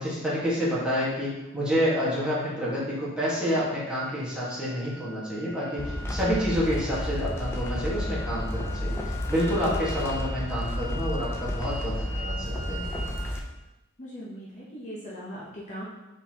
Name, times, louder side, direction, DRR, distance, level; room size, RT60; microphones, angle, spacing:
voice 1, 0.0-9.0 9.3-13.1, equal, 5° right, -9 dB, 1.4 m, -28 dB
sound 1, 3.6-13.3, left 1 dB, 85° right, 1.3 m, -43 dB
sound 2, 5.8-13.4, left 1 dB, 10° left, 0.4 m, -31 dB
voice 2, 14.0-15.8, equal, 35° left, -6 dB, 0.8 m, -39 dB
4.6 x 4.1 x 2.8 m, 0.99 s
head